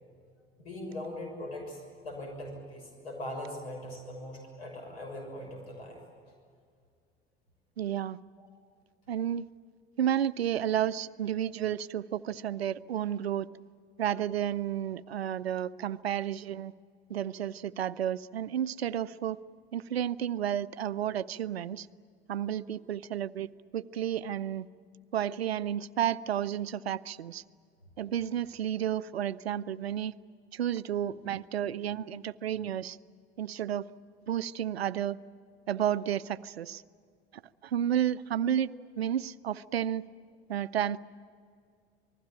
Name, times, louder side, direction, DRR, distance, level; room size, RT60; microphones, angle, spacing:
voice 1, 0.6-6.0 8.4-8.5 38.7-38.8, left 1 dB, 75° left, 2 dB, 6.5 m, -41 dB
voice 2, 7.8-8.2 9.1-9.5 10.0-13.5 14.0-16.7 17.1-19.4 19.7-21.9 22.3-23.5 23.7-24.7 25.1-27.4 28.0-30.1 30.5-33.0 33.4-33.9 34.3-35.2 35.7-36.8 37.6-38.7 39.0-40.1 40.5-41.0, right 10 dB, 80° right, 18 dB, 0.6 m, -31 dB
28.0 x 20.0 x 9.0 m, 2.2 s
figure-of-eight pair, 65°, 31 cm